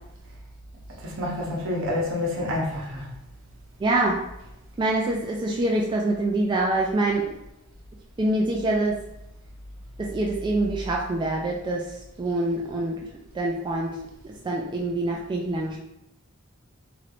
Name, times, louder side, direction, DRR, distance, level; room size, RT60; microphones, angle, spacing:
voice 1, 1.0-3.0, left 1 dB, 70° right, -3 dB, 0.8 m, -28 dB
voice 2, 3.8-4.2 4.8-7.3 8.2-8.9 10.0-13.0 13.3-14.0 14.2-15.8, right 2 dB, 20° right, -2 dB, 0.3 m, -25 dB
3.1 x 3.0 x 2.5 m, 0.86 s
head